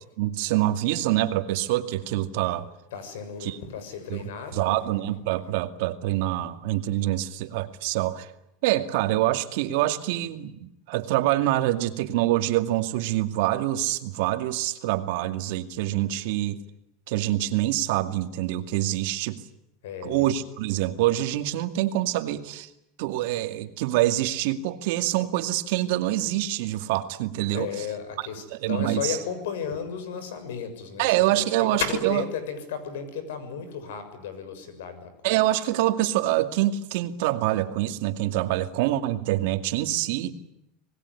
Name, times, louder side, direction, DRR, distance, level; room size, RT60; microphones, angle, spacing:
voice 1, 0.2-2.7 3.4-3.6 4.1-4.2 4.5-8.3 8.6-16.6 17.1-19.4 20.0-22.7 23.0-27.9 28.5-29.2 31.0-32.2 35.2-40.4, right 15 dB, 70° right, 8 dB, 2.3 m, -25 dB
voice 2, 2.9-4.8 19.8-20.3 27.5-31.4 31.7-35.3, left 7 dB, 85° left, 11 dB, 6.8 m, -34 dB
26.5 x 20.0 x 9.8 m, 0.82 s
supercardioid pair, 140°, 0 cm